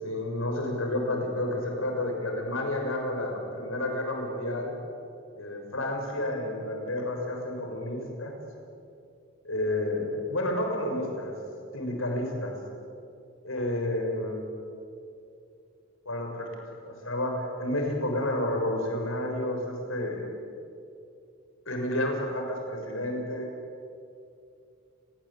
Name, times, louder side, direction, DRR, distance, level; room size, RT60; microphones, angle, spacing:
voice 1, 0.0-4.7 5.3-8.3 9.4-11.3 11.7-12.5 13.4-14.4 16.0-20.3 21.7-23.5, left 1 dB, 75° left, 3 dB, 6.5 m, -30 dB
29.5 x 22.5 x 8.8 m, 2.5 s
head